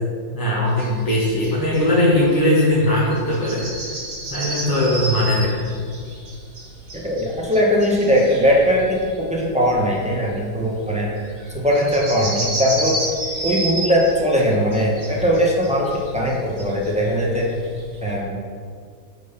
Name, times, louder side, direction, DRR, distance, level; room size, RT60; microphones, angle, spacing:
voice 1, 0.3-3.7 4.3-5.7, left 1 dB, 15° left, -8 dB, 1.0 m, -19 dB
sound 1, 0.7-18.1, right 1 dB, 55° right, 2.3 m, -32 dB
voice 2, 6.9-11.1 11.5-13.0 13.4-17.5 18.0-18.4, equal, 5° right, -3 dB, 0.6 m, -20 dB
9.3 x 4.0 x 5.4 m, 2.1 s
omnidirectional pair, 2.1 m